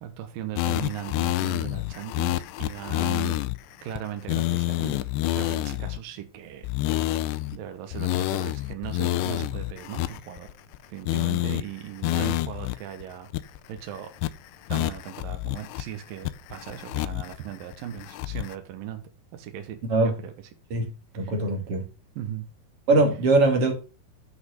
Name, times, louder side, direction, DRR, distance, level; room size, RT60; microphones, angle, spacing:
voice 1, 0.0-3.4 3.8-5.0 5.4-6.7 7.5-10.5 10.9-13.3 13.7-14.1 14.7-19.0 19.3-20.3 21.2-21.3 22.2-22.5, right 10 dB, 70° right, 2.5 m, -38 dB
sound 1, 0.6-3.6 4.0-4.1 4.3-6.0 6.6-7.6 7.9-10.8 11.1-11.6 12.0-12.8 13.0-13.1 13.3-13.8 14.2-14.3 14.7-15.8 16.3-17.4 17.7-18.6, left 16 dB, 90° left, 2.9 m, -28 dB
voice 2, 20.7-21.8 22.9-23.7, right 2 dB, 40° right, 2.6 m, -22 dB
8.5 x 6.1 x 6.4 m
omnidirectional pair, 4.8 m